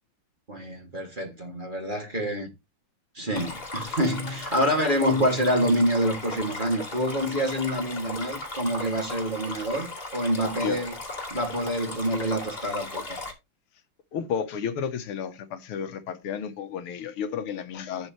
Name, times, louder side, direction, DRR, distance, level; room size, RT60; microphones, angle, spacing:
voice 1, 0.5-2.5 3.1-10.9 11.3-13.2, equal, 20° right, 2.6 m, -27 dB
Stream, 3.3-13.3, left 2 dB, 25° left, 2.5 m, -37 dB
voice 2, 14.1-18.1, left 7 dB, 80° left, 1.9 m, -32 dB
11.5 x 6.5 x 3.2 m
omnidirectional pair, 2.4 m